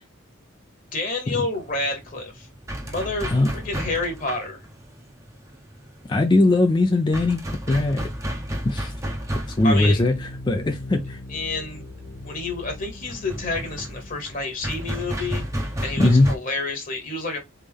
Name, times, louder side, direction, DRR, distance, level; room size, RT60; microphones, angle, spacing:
voice 1, 0.9-2.5 2.8-4.6 9.6-10.0 11.3-11.8 12.2-15.4 15.8-17.4, left 3 dB, 40° left, 1.1 m, -29 dB
sound 1, 1.6-16.4, equal, 15° right, 0.7 m, -33 dB
voice 2, 6.1-8.1 8.6-8.9 9.5-11.2 16.0-16.3, left 2 dB, 20° left, 0.3 m, -20 dB
sound 2, 9.7-14.8, left 2 dB, 75° left, 0.8 m, -39 dB
4.1 x 3.4 x 3.5 m
head